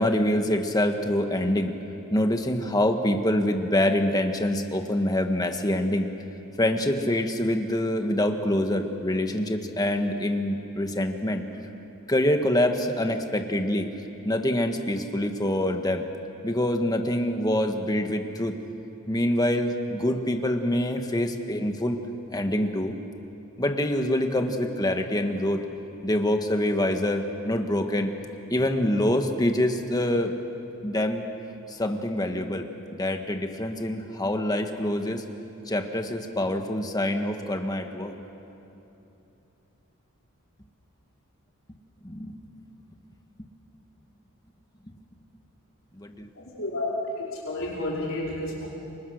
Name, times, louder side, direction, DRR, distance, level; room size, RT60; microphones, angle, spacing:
voice 1, 0.0-1.8 2.1-6.1 6.6-11.4 12.1-13.9 14.2-16.1 16.4-18.5 19.1-22.0 22.3-22.9 23.6-25.6 26.0-28.1 28.5-30.3 30.8-31.2 31.7-32.7 33.0-35.2 35.7-38.1 42.0-42.4 43.4-43.5 44.9-45.0 46.1-46.3, left 1 dB, 15° left, 5 dB, 1.5 m, -25 dB
voice 2, 46.6-46.9 47.2-48.6, left 2 dB, 60° left, -5 dB, 5.1 m, -31 dB
29.0 x 24.5 x 6.6 m, 2.9 s
head